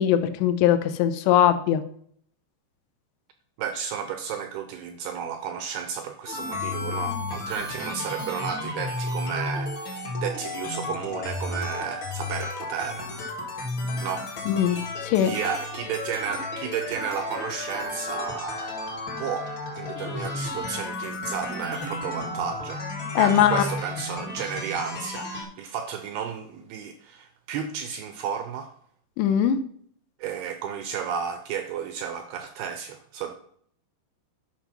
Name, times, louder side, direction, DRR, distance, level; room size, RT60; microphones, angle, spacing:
voice 1, 0.0-1.8 14.5-14.8 15.0-15.4 23.2-23.7 29.2-29.6, left 10 dB, 80° left, 10 dB, 2.7 m, -20 dB
voice 2, 3.6-13.1 14.0-14.3 15.2-18.7 19.2-19.5 19.7-28.7 30.2-33.3, right 7 dB, 85° right, 8 dB, 2.3 m, -33 dB
sound 1, 6.3-25.4, left 2 dB, 45° left, 1.7 m, -33 dB
10.5 x 5.5 x 5.9 m, 0.62 s
omnidirectional pair, 5.2 m